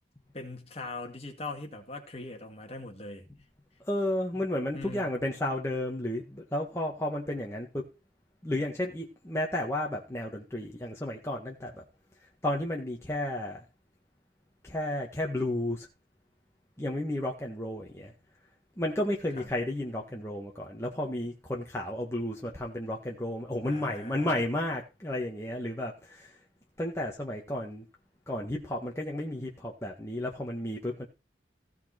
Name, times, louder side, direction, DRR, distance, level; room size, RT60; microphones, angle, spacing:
voice 1, 0.3-3.3 4.7-5.1 19.4-19.5 23.6-24.4, left 2 dB, 35° left, 2.3 m, -41 dB
voice 2, 3.8-7.8 8.4-11.8 12.4-13.6 14.6-15.9 16.8-18.1 18.8-26.4 26.8-27.8 28.3-31.1, left 1 dB, 15° left, 1.7 m, -32 dB
16.0 x 5.8 x 4.4 m
head